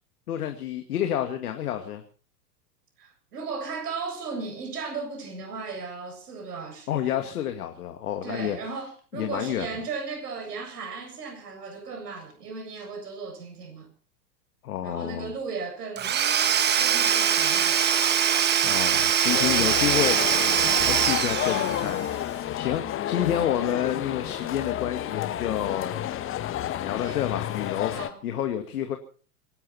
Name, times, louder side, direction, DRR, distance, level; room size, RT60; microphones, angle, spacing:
voice 1, 0.3-2.0 6.9-8.6 9.1-9.7 14.6-15.3 18.6-20.5 20.9-22.0 22.5-26.1 26.8-27.9 28.2-29.0, left 10 dB, 65° left, 2.3 m, -29 dB
voice 2, 3.0-7.0 8.2-13.9 14.8-16.2 16.8-17.9 27.0-27.2 27.9-28.2, right 4 dB, 70° right, 7.4 m, -36 dB
Domestic sounds home sounds / Tools, 16.0-22.1, right 8 dB, 20° right, 1.5 m, -23 dB
sound 1, 19.3-28.1, left 12 dB, 25° left, 1.4 m, -30 dB
25.5 x 11.5 x 4.4 m
figure-of-eight pair, 100°, 49 cm